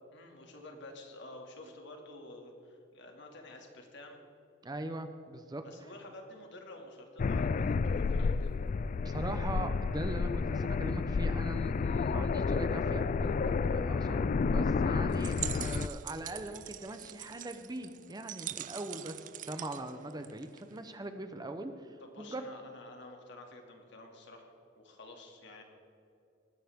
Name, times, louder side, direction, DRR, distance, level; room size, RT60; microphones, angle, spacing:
voice 1, 0.1-4.2 5.6-8.5 22.0-25.6, left 2 dB, 65° left, 2 dB, 2.4 m, -50 dB
voice 2, 4.6-5.6 9.0-22.5, right 1 dB, 20° right, 8 dB, 0.7 m, -41 dB
sound 1, 7.2-15.9, left 4 dB, 40° left, 0.3 m, -30 dB
sound 2, 15.1-20.8, right 13 dB, 40° right, 0.4 m, -43 dB
19.5 x 15.5 x 3.6 m, 2.7 s
head